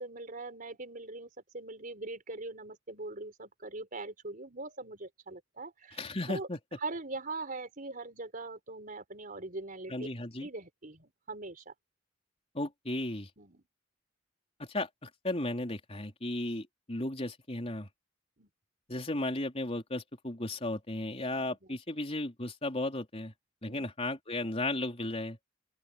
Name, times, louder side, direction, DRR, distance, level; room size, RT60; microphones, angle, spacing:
voice 1, 0.0-6.5 6.8-10.1 10.4-11.7 13.4-13.6 18.4-18.5 23.7-23.9, right 3 dB, 45° right, 5.0 m, -42 dB
voice 2, 6.0-6.6 9.9-10.5 12.5-13.3 14.6-17.9 18.9-23.3 23.6-25.4, left 2 dB, 30° left, 3.8 m, -35 dB
open air
head